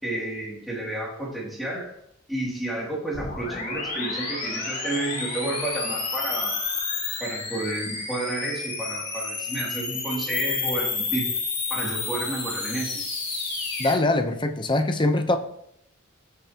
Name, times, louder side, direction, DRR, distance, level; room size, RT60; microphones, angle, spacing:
voice 1, 0.0-2.0 2.3-6.6 7.2-11.3 11.7-13.0, right 2 dB, ahead, 2.7 m, -31 dB
sound 1, 3.1-13.9, left 4 dB, 40° left, 4.7 m, -30 dB
voice 2, 13.8-15.4, left 2 dB, 25° left, 0.8 m, -22 dB
17.0 x 7.2 x 2.9 m
head